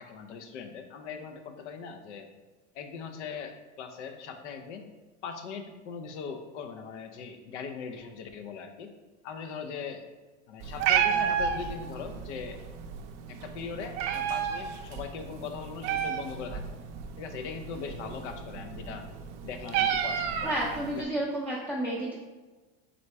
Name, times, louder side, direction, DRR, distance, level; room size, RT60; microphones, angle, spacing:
voice 1, 0.0-2.3 2.7-4.9 5.2-8.9 9.2-10.0 10.5-12.6 13.3-16.7 17.2-19.0 19.4-20.5 20.9-21.0, left 6 dB, 90° left, 7 dB, 0.6 m, -40 dB
Meow, 10.6-21.0, right 8 dB, 60° right, 0.5 m, -32 dB
voice 2, 20.4-22.1, right 1 dB, 5° left, -6 dB, 0.4 m, -31 dB
3.9 x 3.4 x 3.2 m, 1.2 s
supercardioid pair, 110°, 35 cm